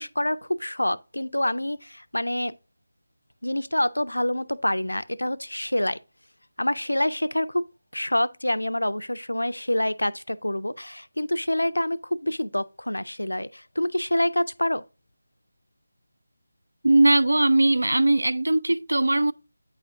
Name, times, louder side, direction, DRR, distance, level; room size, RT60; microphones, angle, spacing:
voice 1, 0.0-2.5 3.4-6.0 6.6-7.6 7.9-14.8, left 1 dB, 85° left, 0.4 m, -26 dB
voice 2, 16.8-19.3, right 2 dB, 75° right, 0.3 m, -20 dB
8.5 x 5.0 x 2.4 m
figure-of-eight pair, 160°, 0 cm